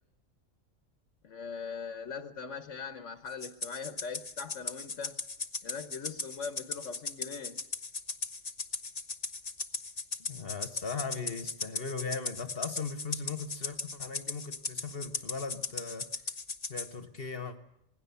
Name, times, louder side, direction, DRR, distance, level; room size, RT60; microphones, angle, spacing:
voice 1, 1.2-5.2 5.6-7.6, left 5 dB, 65° left, 8 dB, 1.4 m, -41 dB
Rattle (instrument), 3.4-16.9, left 4 dB, 30° left, 1.1 m, -38 dB
voice 2, 10.2-16.1 16.7-17.6, left 4 dB, 45° left, 8 dB, 1.4 m, -38 dB
27.0 x 20.0 x 7.0 m, 0.81 s
omnidirectional pair, 1.4 m